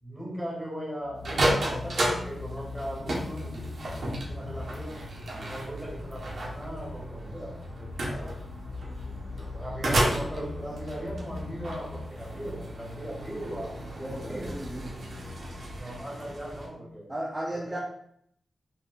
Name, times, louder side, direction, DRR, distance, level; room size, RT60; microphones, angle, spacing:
voice 1, 0.0-5.0 5.4-8.3 9.0-14.7 15.7-17.1 17.5-17.8, equal, 5° left, -5 dB, 1.6 m, -39 dB
sound 1, 1.0-15.8, left 3 dB, 85° left, 0.3 m, -42 dB
sound 2, 1.2-16.7, right 1 dB, 55° right, 1.0 m, -33 dB
voice 2, 14.0-14.9 17.1-17.8, right 1 dB, 15° right, -3 dB, 0.5 m, -35 dB
4.0 x 3.7 x 2.3 m, 0.69 s
wide cardioid pair, 175°, 0 cm